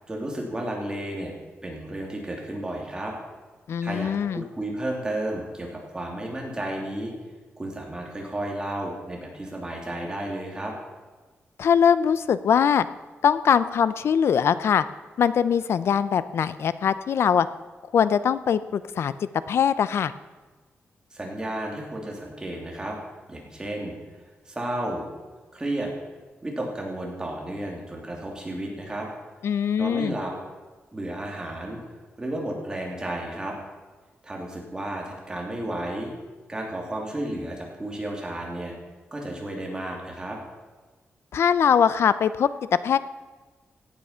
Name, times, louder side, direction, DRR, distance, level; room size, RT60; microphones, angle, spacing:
voice 1, 0.1-1.3 1.6-3.1 3.8-7.1 7.6-10.7 21.1-23.0 23.3-23.9 24.4-25.0 25.5-25.9 26.4-29.1 29.8-30.3 30.9-31.8 32.2-33.5 34.2-36.1 36.5-38.7 39.1-40.4, right 1 dB, 15° right, -1 dB, 3.0 m, -32 dB
voice 2, 3.7-4.4 11.6-12.9 13.2-14.8 15.2-17.5 17.9-19.1 19.5-20.1 29.4-30.2 41.3-42.5 42.8-43.0, left 7 dB, 70° left, 15 dB, 0.6 m, -21 dB
16.5 x 9.1 x 5.7 m, 1.3 s
wide cardioid pair, 140°, 4 cm